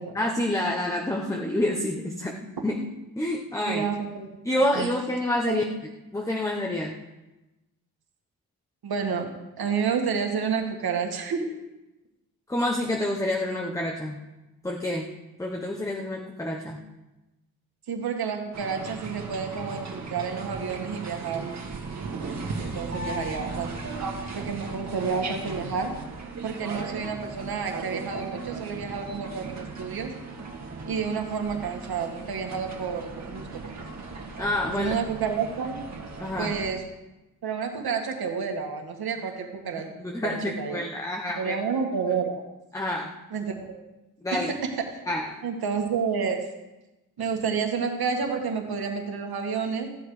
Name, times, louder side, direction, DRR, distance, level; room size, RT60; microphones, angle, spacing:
voice 1, 0.1-2.9 3.2-3.8 4.4-5.6 6.1-7.0 12.5-14.2 14.6-15.1 15.4-16.8 34.4-34.9 36.2-36.5 40.0-41.5 42.7-43.1 44.2-44.5 45.1-45.4, left 1 dB, 10° left, 1 dB, 1.0 m, -28 dB
voice 2, 3.7-4.3 4.8-4.9 5.5-5.6 8.8-11.6 17.9-21.5 22.6-23.8 24.3-25.9 26.4-30.1 30.9-33.5 34.7-35.8 36.4-36.8 37.4-39.9 40.2-40.8 41.4-42.4 43.3-43.8 44.3-44.8 45.4-46.4 47.2-49.9, right 6 dB, 70° right, 3 dB, 2.0 m, -30 dB
sound 1, 18.5-36.7, right 4 dB, 45° right, 2.1 m, -37 dB
15.0 x 10.5 x 5.0 m, 1.0 s
wide cardioid pair, 155°, 38 cm